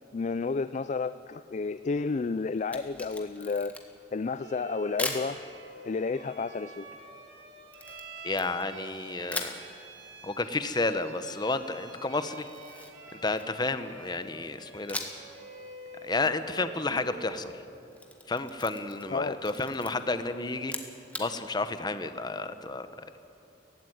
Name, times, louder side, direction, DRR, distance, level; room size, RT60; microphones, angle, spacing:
voice 1, 0.1-3.8 4.1-5.4 5.8-6.9 19.1-19.4, left 4 dB, 40° left, 13 dB, 0.4 m, -31 dB
Camera, 2.6-4.1 5.0-5.3 7.7-8.9 9.3-9.6 12.3-13.8 14.9-15.3 15.6-15.7 17.7-19.1 19.4-19.9 20.6-21.3, left 2 dB, 10° left, 1.7 m, -38 dB
Bowed string instrument, 4.4-17.6, right 3 dB, 85° right, 3.3 m, -48 dB
voice 2, 8.2-9.6 10.2-12.5 13.1-15.0 16.0-17.6 18.3-20.8 21.2-22.9, left 3 dB, 25° left, 11 dB, 0.8 m, -31 dB
16.5 x 15.5 x 10.0 m, 2.9 s
head